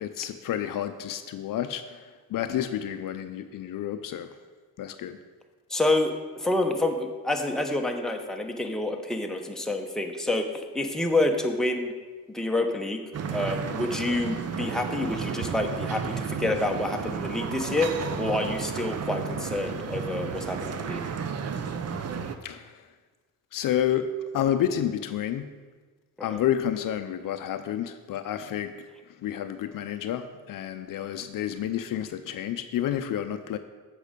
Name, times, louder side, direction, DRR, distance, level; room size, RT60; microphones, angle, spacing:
voice 1, 0.0-4.4 4.8-5.2 22.4-22.8 23.5-25.5 26.2-28.7 29.1-33.6, left 10 dB, 60° left, 10 dB, 0.6 m, -30 dB
voice 2, 5.7-10.5 10.7-11.9 12.3-13.0 13.3-21.0 26.3-26.4, left 2 dB, ahead, 2 dB, 0.9 m, -28 dB
sound 1, 13.1-22.4, right 6 dB, 40° right, 0.7 m, -32 dB
8.3 x 5.4 x 5.1 m, 1.4 s
cardioid pair, 90°, 37 cm